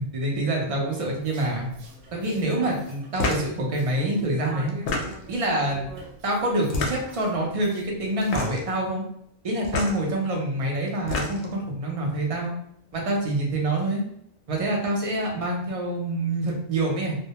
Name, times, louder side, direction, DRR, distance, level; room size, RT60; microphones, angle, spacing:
voice 1, 0.1-1.7 2.1-4.8 5.3-5.9 6.2-9.0 9.4-12.5 12.9-14.0 14.5-17.2, right 1 dB, 45° right, -1 dB, 0.5 m, -26 dB
sound 1, 0.9-8.4, right 2 dB, 90° right, 0.9 m, -44 dB
sound 2, 3.1-3.5 4.7-5.4 6.6-7.2 8.2-8.7 9.6-10.0 10.9-11.6, left 3 dB, 65° left, 0.7 m, -28 dB
2.1 x 2.1 x 2.8 m, 0.70 s
omnidirectional pair, 1.2 m